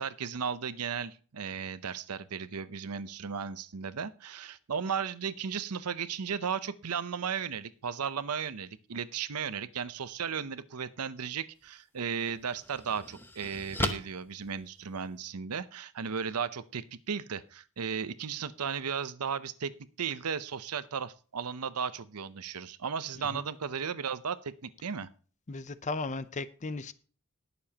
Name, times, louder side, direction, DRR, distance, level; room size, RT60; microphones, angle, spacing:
voice 1, 0.0-19.7 20.0-25.1, right 6 dB, 90° right, 0.7 m, -35 dB
sound 1, 11.6-11.7 12.3-15.3, left 1 dB, 10° left, 0.9 m, -37 dB
voice 2, 25.5-26.9, left 3 dB, 35° left, 0.6 m, -36 dB
20.0 x 7.0 x 2.9 m
head